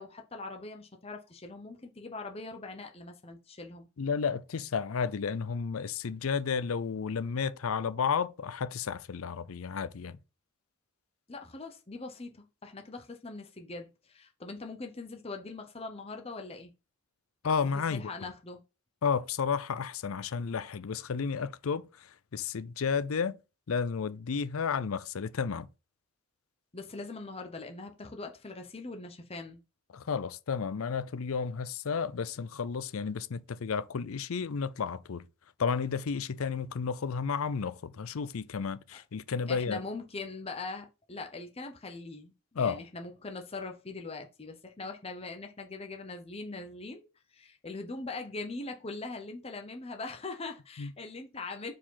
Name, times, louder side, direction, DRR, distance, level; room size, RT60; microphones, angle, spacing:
voice 1, 0.0-3.9 11.3-16.7 17.7-18.6 26.7-29.6 38.9-39.0 39.5-47.1 47.3-51.7, left 3 dB, 25° left, 0.7 m, -41 dB
voice 2, 4.0-10.2 17.4-18.3 19.0-23.4 23.7-25.7 29.9-35.2 35.6-39.8 42.6-42.8 50.8-50.9, left 6 dB, 75° left, 0.5 m, -32 dB
4.9 x 4.5 x 5.7 m
head